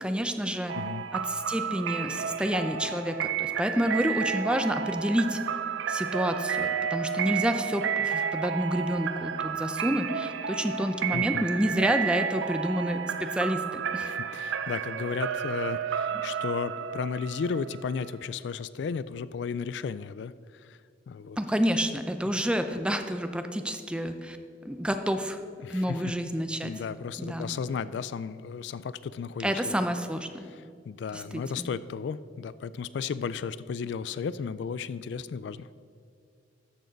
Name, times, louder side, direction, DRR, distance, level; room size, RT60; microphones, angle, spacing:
voice 1, 0.0-0.8 1.1-5.4 5.9-14.1 21.4-24.4 24.6-25.4 25.7-26.7 27.2-27.5 29.4-30.5 31.1-31.7, equal, 5° right, 8 dB, 0.5 m, -29 dB
sound 1, 0.7-18.3, right 7 dB, 75° right, 0.4 m, -32 dB
voice 2, 11.1-11.4 14.0-20.8 21.1-21.4 22.3-22.4 25.6-26.1 26.6-29.8 30.4-35.7, left 6 dB, 65° left, 16 dB, 0.3 m, -34 dB
13.5 x 6.4 x 5.2 m, 2.3 s
head